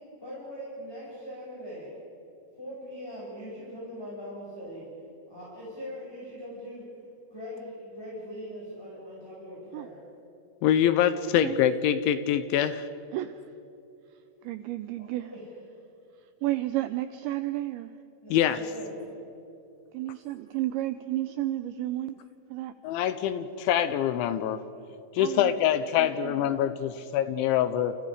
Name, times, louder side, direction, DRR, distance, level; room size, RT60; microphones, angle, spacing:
voice 1, 0.2-1.9 2.6-4.9 5.3-6.8 7.3-10.1 15.0-15.5 18.2-19.1 26.9-27.1, equal, 5° left, -6 dB, 6.0 m, -41 dB
voice 2, 10.6-12.9 18.3-18.6 22.8-24.6 25.1-28.0, left 10 dB, 80° left, 12 dB, 2.9 m, -25 dB
voice 3, 14.5-15.3 16.4-17.9 19.9-22.2 22.5-22.7 25.2-25.5 26.0-26.7, right 15 dB, 85° right, 11 dB, 2.6 m, -32 dB
29.5 x 29.0 x 5.1 m, 2.7 s
omnidirectional pair, 6.0 m